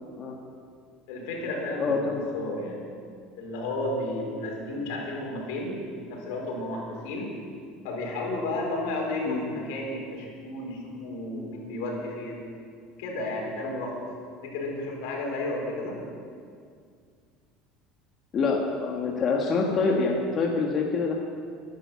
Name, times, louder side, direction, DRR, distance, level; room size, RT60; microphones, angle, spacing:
voice 1, 1.1-1.9 2.3-2.8 3.4-7.3 7.8-12.5 13.0-14.1 14.4-16.0, left 2 dB, 80° left, -1 dB, 4.6 m, -32 dB
voice 2, 1.8-2.2 9.2-9.4 18.3-21.1, left 4 dB, 40° left, -1 dB, 1.7 m, -26 dB
14.0 x 11.5 x 7.1 m, 2.2 s
supercardioid pair, 115°, 0 cm